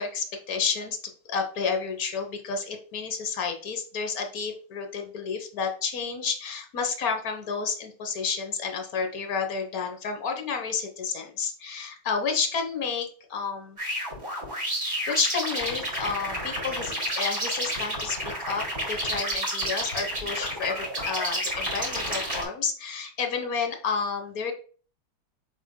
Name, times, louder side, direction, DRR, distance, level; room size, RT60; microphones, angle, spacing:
voice 1, 0.0-13.8 14.8-24.5, left 5 dB, 50° left, 5 dB, 1.3 m, -31 dB
sound 1, 13.8-22.4, equal, 30° right, 3.6 m, -30 dB
8.1 x 5.5 x 2.2 m, 0.41 s
omnidirectional pair, 2.4 m